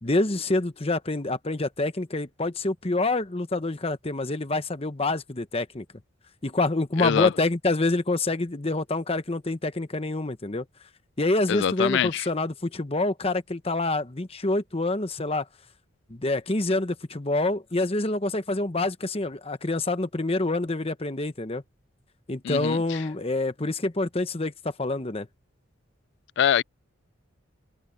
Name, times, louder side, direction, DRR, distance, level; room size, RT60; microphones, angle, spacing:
voice 1, 0.0-5.8 6.4-10.6 11.2-15.5 16.1-21.6 22.3-24.5 24.8-25.3, left 2 dB, 30° left, 1.0 m, -27 dB
voice 2, 7.0-7.3 11.5-12.3 22.4-23.0 26.4-26.6, left 9 dB, 60° left, 0.3 m, -24 dB
head